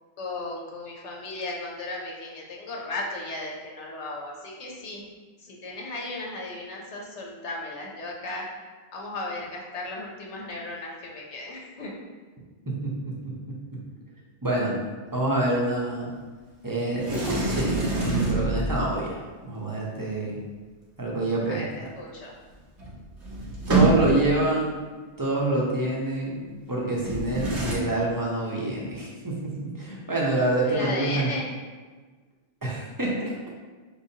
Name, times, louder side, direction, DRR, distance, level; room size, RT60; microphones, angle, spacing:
voice 1, 0.2-5.1 5.4-8.5 8.9-11.9 21.5-21.7 22.0-22.3 30.7-31.5, left 2 dB, 75° left, -2 dB, 1.0 m, -35 dB
voice 2, 12.7-13.8 14.4-14.7 15.1-16.1 16.6-20.4 21.0-21.9 23.7-24.8 25.2-26.4 26.7-31.3 32.6-33.4, right 2 dB, 20° right, -4 dB, 0.7 m, -27 dB
Sliding door, 17.0-19.0 22.5-22.6 22.8-24.4 27.0-27.7, right 2 dB, 75° right, 1.2 m, -26 dB
4.7 x 3.5 x 2.8 m, 1.4 s
omnidirectional pair, 1.2 m